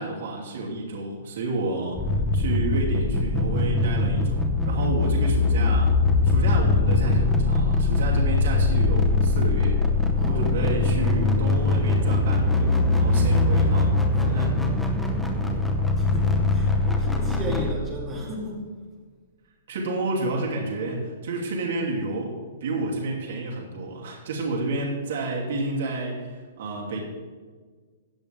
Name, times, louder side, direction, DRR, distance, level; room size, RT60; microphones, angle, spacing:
voice 1, 0.0-5.9 6.2-9.8 10.2-14.5 19.7-27.0, right 2 dB, 60° right, -3 dB, 2.7 m, -30 dB
sound 1, 2.0-17.7, left 3 dB, ahead, 0.8 m, -22 dB
voice 2, 10.2-10.8 15.4-18.6, right 1 dB, 15° right, -3 dB, 2.2 m, -35 dB
15.5 x 8.6 x 3.5 m, 1.5 s
hypercardioid pair, 170°, 0 cm